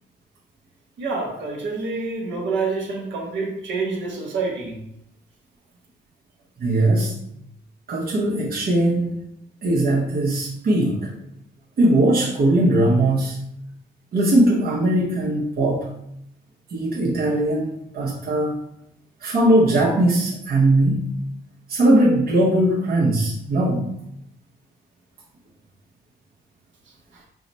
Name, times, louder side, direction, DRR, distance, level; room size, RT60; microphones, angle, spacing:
voice 1, 1.0-4.8, right 4 dB, 70° right, -1 dB, 1.1 m, -27 dB
voice 2, 6.6-7.2 7.9-9.2 9.6-11.1 11.8-13.4 14.1-15.9 16.7-18.5 19.2-21.1 21.7-23.9, right 1 dB, 50° right, -5 dB, 0.9 m, -19 dB
4.8 x 2.1 x 4.0 m, 0.77 s
cardioid pair, 90°, 20 cm